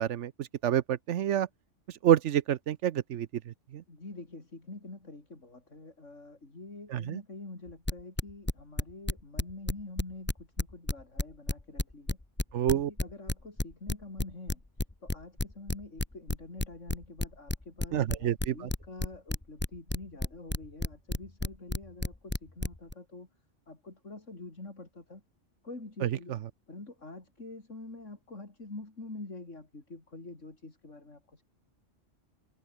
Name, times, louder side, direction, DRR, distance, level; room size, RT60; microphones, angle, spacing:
voice 1, 0.0-1.5 2.0-3.8 6.9-7.2 12.5-12.9 17.9-18.7 26.0-26.1, right 10 dB, 70° right, 1.0 m, -28 dB
voice 2, 3.9-12.2 12.7-14.6 15.0-23.3 23.7-25.2 25.6-26.4 26.7-31.4, left 2 dB, 70° left, 4.5 m, -46 dB
sound 1, 7.7-10.0 10.3-22.9, left 2 dB, 10° left, 0.7 m, -31 dB
omnidirectional pair, 1.3 m